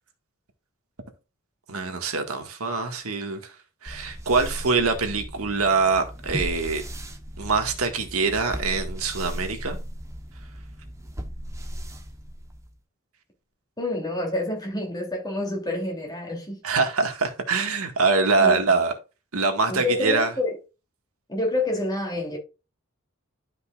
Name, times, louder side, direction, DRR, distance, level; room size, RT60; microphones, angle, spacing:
voice 1, 1.7-3.6 3.8-6.8 7.4-9.8 16.6-18.9 19.3-20.3, right 4 dB, 90° right, 1.8 m, -24 dB
sound 1, 3.9-12.8, equal, 15° right, 1.0 m, -37 dB
voice 2, 13.8-16.6 18.4-18.5 19.7-20.6 21.3-22.4, left 2 dB, 20° left, 3.0 m, -27 dB
12.5 x 5.4 x 2.5 m
head